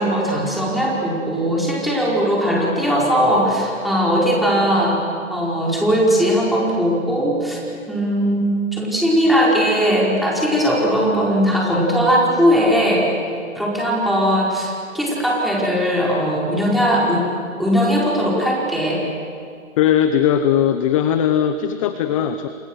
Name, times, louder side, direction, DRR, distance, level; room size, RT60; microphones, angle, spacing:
voice 1, 0.0-5.0 5.3-7.6 7.9-13.1 13.5-17.3 17.6-19.0, equal, ahead, -5 dB, 5.0 m, -19 dB
voice 2, 19.8-22.5, left 9 dB, 25° left, 9 dB, 0.8 m, -18 dB
29.5 x 27.0 x 6.5 m, 2.3 s
hypercardioid pair, 140°, 41 cm